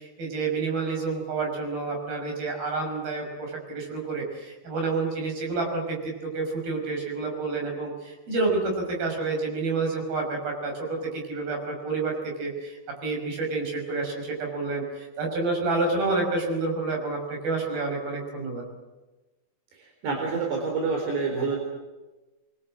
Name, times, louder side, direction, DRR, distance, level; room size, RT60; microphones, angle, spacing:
voice 1, 0.0-12.1 12.4-18.6, right 3 dB, 60° right, 1 dB, 7.8 m, -29 dB
voice 2, 20.0-21.6, right 4 dB, 80° right, 1 dB, 6.4 m, -27 dB
27.0 x 23.5 x 7.6 m, 1.1 s
omnidirectional pair, 4.8 m